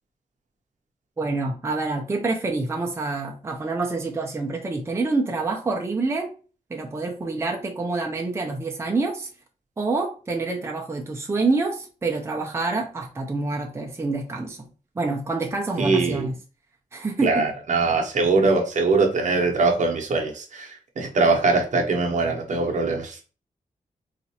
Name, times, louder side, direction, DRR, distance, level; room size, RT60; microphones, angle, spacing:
voice 1, 1.2-6.3 6.7-9.3 9.8-14.7 15.0-16.3 16.9-17.4, right 3 dB, 20° right, 1 dB, 0.5 m, -27 dB
voice 2, 15.8-16.3 17.2-23.2, right 3 dB, 60° right, 2 dB, 0.8 m, -22 dB
4.0 x 2.4 x 2.8 m, 0.36 s
wide cardioid pair, 170°, 14 cm